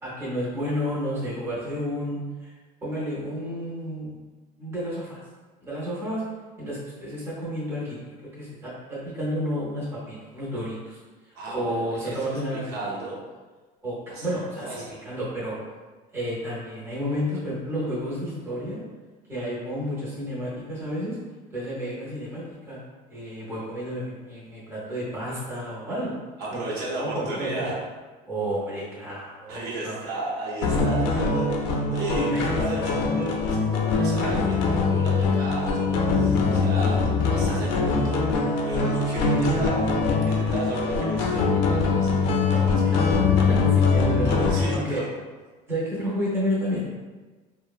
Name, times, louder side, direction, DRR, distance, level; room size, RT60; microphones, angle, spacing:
voice 1, 0.0-2.5 2.8-4.2 4.6-5.2 5.6-6.2 6.6-11.0 11.5-12.8 13.8-15.6 16.1-18.8 19.3-21.2 21.5-22.8 23.1-26.1 26.5-27.8 28.3-30.0 32.3-32.9 42.5-43.1 43.4-45.0 45.7-47.0, equal, 15° right, -7 dB, 0.6 m, -31 dB
voice 2, 11.3-13.2 14.1-14.3 14.6-14.9 26.4-27.8 29.5-39.9 40.1-43.2 44.2-45.1, right 2 dB, 65° right, -4 dB, 0.7 m, -34 dB
sound 1, 30.6-44.7, left 4 dB, 70° left, 0.4 m, -22 dB
3.0 x 2.0 x 2.4 m, 1.3 s
cardioid pair, 170°, 18 cm